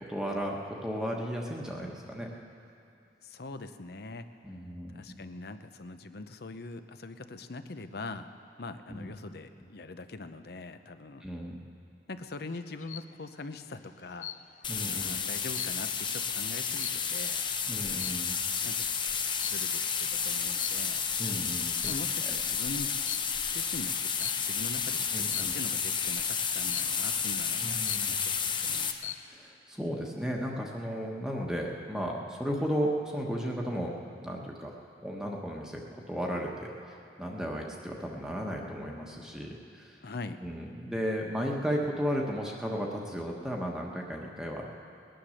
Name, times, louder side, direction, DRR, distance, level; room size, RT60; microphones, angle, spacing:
voice 1, 0.0-2.3 4.4-5.2 8.9-9.1 11.2-11.6 14.7-15.2 17.7-18.4 21.2-21.9 25.1-25.5 27.6-28.1 29.3-33.9 34.2-34.7 35.0-35.8 36.1-40.0 40.4-44.7, equal, 5° right, -1 dB, 1.2 m, -34 dB
voice 2, 3.2-4.2 4.9-8.3 8.6-11.3 12.1-14.3 14.9-17.4 18.6-18.9 19.4-21.0 21.9-23.0 23.5-29.1 40.0-40.4, left 2 dB, 60° left, 10 dB, 0.7 m, -42 dB
sound 1, 12.5-13.1 14.2-14.7 15.1-17.4 17.9-18.4 19.4-19.8 20.6-21.2 21.7-22.3 23.0-23.4 24.2-24.6 25.3-25.7 26.7-27.2 27.6-27.7 27.8-28.4 28.8-29.3, left 12 dB, 45° left, 0.3 m, -42 dB
sound 2, 14.6-28.9, left 6 dB, 25° left, 0.7 m, -31 dB
19.5 x 10.5 x 6.4 m, 2.6 s
head